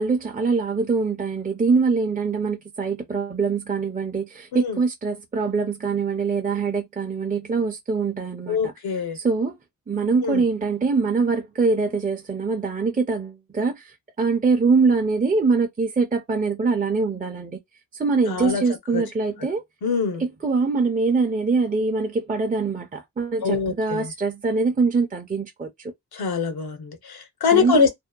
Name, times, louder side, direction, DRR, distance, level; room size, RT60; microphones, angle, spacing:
voice 1, 0.0-8.7 9.1-9.6 9.9-17.6 18.0-19.6 20.2-25.9 27.5-27.9, right 4 dB, 25° right, 0.5 m, -23 dB
voice 2, 8.5-9.2 10.2-10.4 18.3-18.6 18.9-19.0 19.8-20.2 23.4-24.1 26.1-27.9, left 5 dB, 90° left, 0.9 m, -23 dB
2.8 x 2.0 x 2.2 m
cardioid pair, 75°, 36 cm